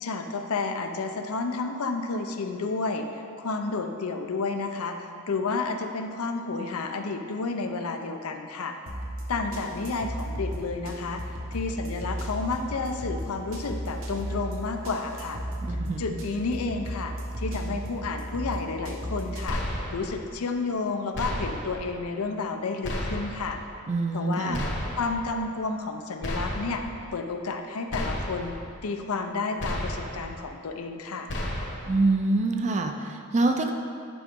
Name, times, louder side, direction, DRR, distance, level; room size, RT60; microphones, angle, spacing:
voice 1, 0.0-8.8 9.3-15.4 16.0-19.6 19.9-23.6 24.1-24.6 25.0-26.8 27.1-28.6 28.8-31.3, left 3 dB, 80° left, 5 dB, 0.6 m, -31 dB
sound 1, 8.9-19.5, equal, 65° right, 1.0 m, -35 dB
voice 2, 15.6-16.2 23.9-24.7 31.8-33.7, right 2 dB, 30° right, 5 dB, 0.4 m, -26 dB
sound 2, 19.5-20.2 21.1-21.8 22.8-23.5 24.5-25.2 26.2-26.9 27.9-28.6 29.6-30.3 31.3-32.0, left 1 dB, 55° left, 1.1 m, -32 dB
10.0 x 4.9 x 3.6 m, 2.4 s
head